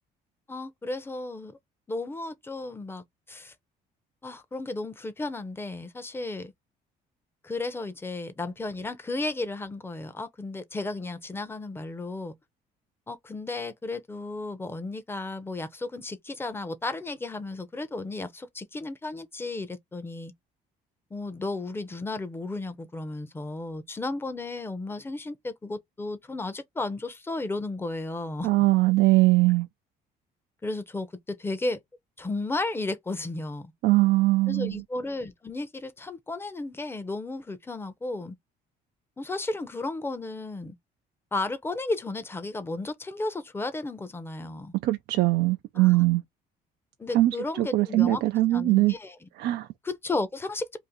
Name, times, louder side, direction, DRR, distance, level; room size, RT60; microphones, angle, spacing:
voice 1, 0.5-1.6 1.9-3.5 4.2-6.5 7.4-12.3 13.1-20.3 21.1-28.5 30.6-31.8 32.2-33.7 34.5-38.3 39.2-40.7 41.3-44.7 45.8-46.0 47.0-48.2 48.5-49.2 49.8-50.8, left 2 dB, 15° left, 0.7 m, -34 dB
voice 2, 28.4-29.7 33.8-34.8 44.8-46.2 47.1-48.9 49.4-49.7, right 18 dB, 75° right, 0.4 m, -21 dB
2.7 x 2.5 x 3.7 m
cardioid pair, 110°, 17 cm